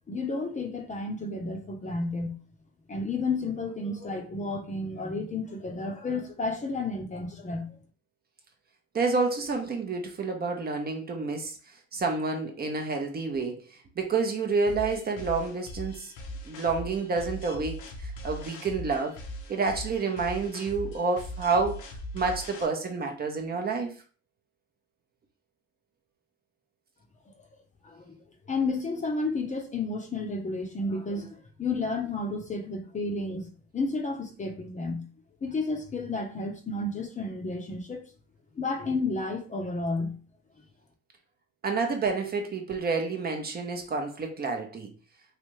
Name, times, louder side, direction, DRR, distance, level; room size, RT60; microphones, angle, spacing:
voice 1, 0.1-2.4 2.9-7.8 27.8-33.5 33.7-35.0 35.4-38.1 38.6-40.2, left 3 dB, 25° left, 0.7 m, -32 dB
voice 2, 8.9-11.6 11.9-13.6 14.0-16.1 16.5-17.7 18.0-19.2 19.5-21.8 22.1-23.9 41.6-44.9, right 4 dB, 30° right, 0.6 m, -29 dB
sound 1, 14.7-22.7, equal, 80° left, 0.8 m, -40 dB
3.2 x 2.6 x 3.0 m
cardioid pair, 95°, 30 cm